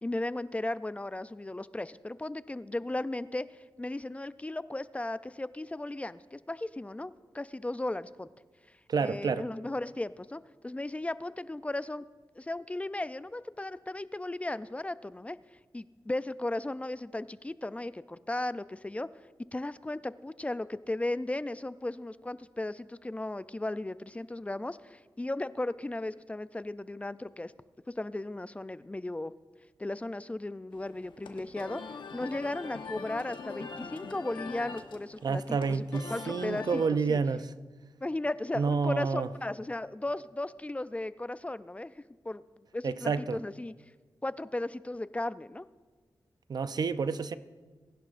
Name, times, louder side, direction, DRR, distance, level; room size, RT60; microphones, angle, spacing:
voice 1, 0.0-8.3 9.0-12.0 12.4-15.4 15.7-19.1 19.5-27.5 28.0-29.3 29.8-31.8 32.1-36.8 37.1-37.2 38.0-42.0 42.3-42.4 42.7-43.7 44.2-45.6, left 2 dB, 15° left, 0.3 m, -36 dB
voice 2, 8.9-9.5 35.2-37.5 38.5-39.3 42.8-43.4 46.5-47.4, right 5 dB, 60° right, 0.5 m, -29 dB
sound 1, 30.7-36.9, left 4 dB, 85° left, 1.0 m, -43 dB
19.5 x 11.0 x 2.5 m
wide cardioid pair, 80°, 8 cm